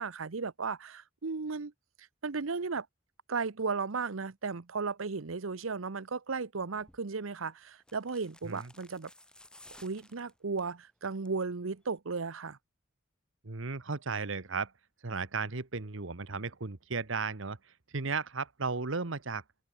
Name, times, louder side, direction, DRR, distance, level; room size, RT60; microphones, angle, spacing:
voice 1, 0.0-1.7 2.2-2.9 3.3-9.1 9.8-12.6, right 4 dB, 85° right, 0.9 m, -35 dB
sound 1, 6.8-7.0 7.8-10.7 11.1-11.5 11.7-11.8, left 1 dB, 5° left, 6.5 m, -57 dB
voice 2, 13.4-14.7 15.0-17.6 17.9-19.4, right 4 dB, 70° right, 1.3 m, -35 dB
head